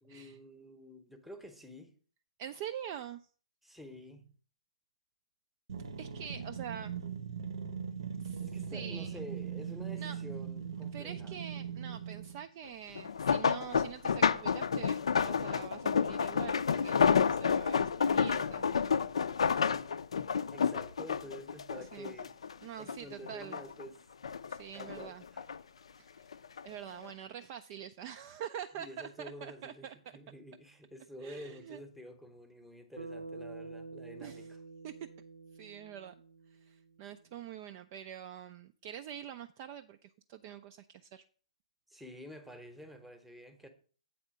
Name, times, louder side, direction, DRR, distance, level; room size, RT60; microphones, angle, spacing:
voice 1, 0.0-1.9 3.6-4.3 8.4-11.4 20.5-22.3 22.8-24.0 24.7-25.5 28.7-34.6 41.9-43.7, equal, ahead, 0.9 m, -49 dB
voice 2, 2.4-3.2 6.0-6.9 8.2-9.2 10.0-10.2 10.9-19.0 21.9-22.1 22.6-23.6 24.5-25.2 26.0-26.3 26.6-30.0 31.2-31.8 34.2-34.5 34.8-34.9 35.5-36.1 36.5-41.2, right 9 dB, 30° right, 0.3 m, -45 dB
sound 1, 5.7-12.4, right 7 dB, 55° right, 0.8 m, -40 dB
sound 2, 12.9-22.5 22.9-23.8 24.2-25.6 26.3-26.6 27.0-27.1, left 6 dB, 60° left, 0.4 m, -30 dB
Bass guitar, 33.0-37.3, right 3 dB, 85° right, 0.9 m, -48 dB
8.1 x 4.2 x 6.3 m
figure-of-eight pair, 125°, 4 cm